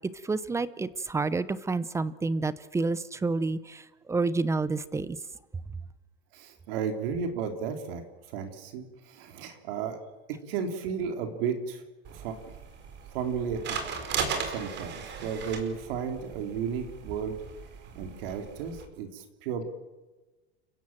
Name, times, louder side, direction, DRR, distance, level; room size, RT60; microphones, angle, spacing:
voice 1, 0.2-3.8 4.1-5.2, right 3 dB, 10° right, 17 dB, 0.8 m, -29 dB
voice 2, 6.3-8.0 8.3-10.0 10.5-11.8 12.1-12.4 13.1-13.8 14.4-17.4 18.0-19.6, right 6 dB, 70° right, 6 dB, 3.7 m, -33 dB
sound 1, 12.0-18.9, right 6 dB, 35° right, 4.7 m, -37 dB
30.0 x 16.5 x 7.6 m, 1.2 s
supercardioid pair, 145°, 29 cm